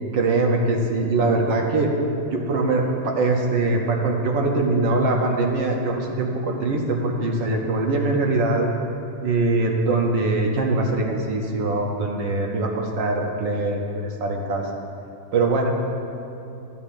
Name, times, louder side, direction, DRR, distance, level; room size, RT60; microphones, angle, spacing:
voice 1, 0.1-1.9 2.3-8.7 9.2-13.8 14.2-14.7 15.3-15.7, right 2 dB, 75° right, 1 dB, 1.5 m, -22 dB
13.0 x 8.6 x 2.6 m, 2.7 s
omnidirectional pair, 2.1 m